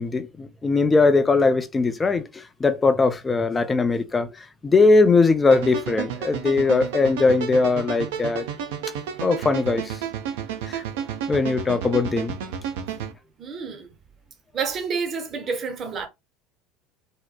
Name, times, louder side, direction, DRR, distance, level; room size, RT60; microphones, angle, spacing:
voice 1, 0.0-8.5 9.2-10.0 10.7-10.8 11.3-12.4, left 3 dB, 20° left, 0.4 m, -20 dB
sound 1, 5.5-13.1, right 8 dB, 65° right, 0.5 m, -31 dB
voice 2, 13.4-13.9 14.5-16.1, right 5 dB, 35° right, 0.8 m, -29 dB
2.8 x 2.1 x 2.3 m
figure-of-eight pair, 70°, 0 cm